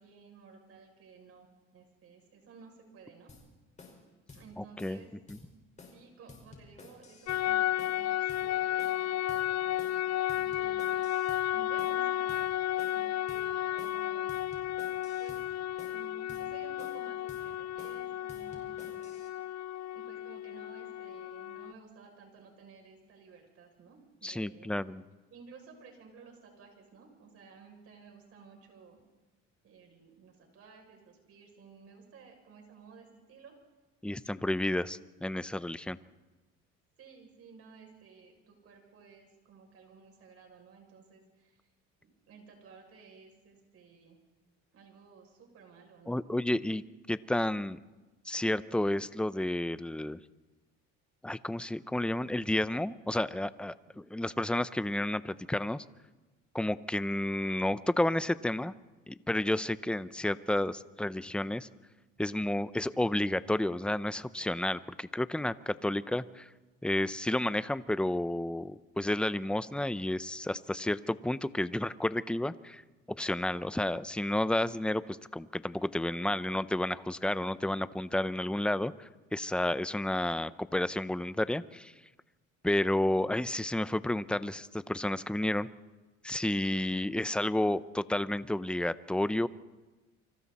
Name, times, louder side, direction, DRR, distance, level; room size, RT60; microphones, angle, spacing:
voice 1, 0.0-3.3 4.3-5.1 5.5-5.6 5.9-11.0 11.5-12.5 12.9-14.3 15.2-15.4 15.9-19.6 19.9-24.7 25.3-29.0 29.6-33.5 37.0-41.6 42.0-44.2 44.7-46.3, right 5 dB, 55° right, 2 dB, 6.8 m, -55 dB
sound 1, 3.3-3.4 3.8-4.0 4.3-4.4 4.8-5.0 5.3-5.4 5.8-6.0 6.3-7.4 7.8-8.0 8.3-8.4 8.8-9.0 9.3-9.4 9.8-10.0 10.3-11.4 11.8-12.0 12.3-12.4 12.8-13.0 13.3-13.4 13.8-14.0 14.3-15.4 15.8-16.0 16.3-16.4 16.8-17.0 17.3-17.4 17.8-18.0 18.3-19.3, left 4 dB, 25° left, 5.1 m, -52 dB
voice 2, 4.6-5.0 5.3-5.4 24.2-25.0 34.0-36.0 46.1-46.8 47.1-47.8 48.3-50.2 51.2-55.8 56.5-58.7 59.1-61.7 62.2-66.5 66.8-72.8 73.1-81.9 82.6-85.7 86.2-89.5, left 1 dB, 5° left, 15 dB, 0.6 m, -31 dB
sound 2, 7.3-21.7, left 13 dB, 65° left, 0.7 m, -33 dB
28.5 x 25.0 x 4.2 m, 1.2 s
cardioid pair, 120°, 29 cm